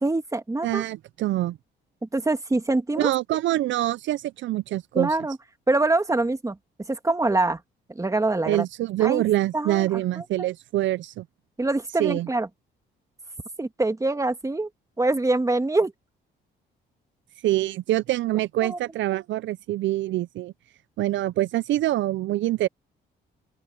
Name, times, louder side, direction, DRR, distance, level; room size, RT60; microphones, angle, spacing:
voice 1, 0.0-0.8 2.0-3.1 4.9-5.4 5.7-6.6 6.9-7.6 7.9-8.7 9.0-9.2 9.5-9.9 10.2-10.5 11.6-12.5 13.6-14.7 15.0-15.9 18.6-18.8, right 2 dB, 15° right, 2.0 m, -24 dB
voice 2, 0.6-1.6 3.0-5.2 8.4-11.2 12.0-12.3 17.4-20.5 21.0-22.7, right 15 dB, 70° right, 0.5 m, -25 dB
open air
cardioid pair, 90°, 20 cm